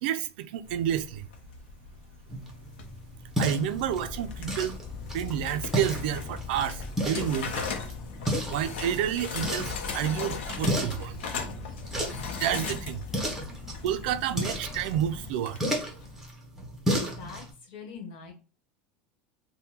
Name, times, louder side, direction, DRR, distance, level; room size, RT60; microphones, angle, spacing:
voice 1, 0.0-1.3 3.4-4.8 5.1-7.7 8.5-11.2 12.4-13.0 13.8-15.6, right 10 dB, 70° right, 0.4 m, -30 dB
sound 1, 0.6-16.3, left 5 dB, 90° left, 0.6 m, -40 dB
sound 2, 2.3-17.5, equal, 5° right, 0.8 m, -34 dB
sound 3, 3.7-15.3, left 5 dB, 40° left, 0.5 m, -42 dB
voice 2, 17.0-18.3, left 6 dB, 70° left, 1.1 m, -43 dB
3.4 x 2.1 x 2.8 m
supercardioid pair, 150°, 6 cm